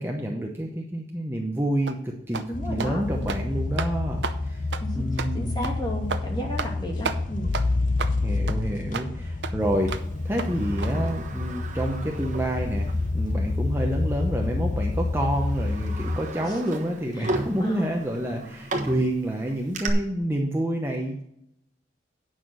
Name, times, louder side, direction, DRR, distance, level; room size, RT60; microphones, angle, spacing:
voice 1, 0.0-2.4 2.7-4.6 4.9-5.7 8.2-10.0 10.2-21.2, right 1 dB, 10° right, 0 dB, 0.9 m, -28 dB
sound 1, 1.9-2.0 2.3-2.5 2.8-2.9 3.2-3.4 3.8-3.9 4.2-4.4 4.7-4.8 5.2-5.3 5.6-5.8 6.1-6.2 6.6-6.8 7.0-7.2 7.5-7.7 8.0-8.2 8.5-8.6 8.9-9.1 9.4-9.5 9.9-10.1 10.4-10.5 10.8-10.9, right 5 dB, 70° right, 0.7 m, -31 dB
sound 2, 2.5-16.2, left 2 dB, 45° left, 0.6 m, -28 dB
voice 2, 2.5-3.0 4.8-7.5 16.4-16.6 17.1-17.9, equal, 25° left, -2 dB, 2.4 m, -34 dB
Sliding door, 9.9-13.1 13.5-13.6 14.5-14.7 15.2-19.9, right 2 dB, 40° right, 1.3 m, -36 dB
9.3 x 5.9 x 6.3 m, 0.75 s
head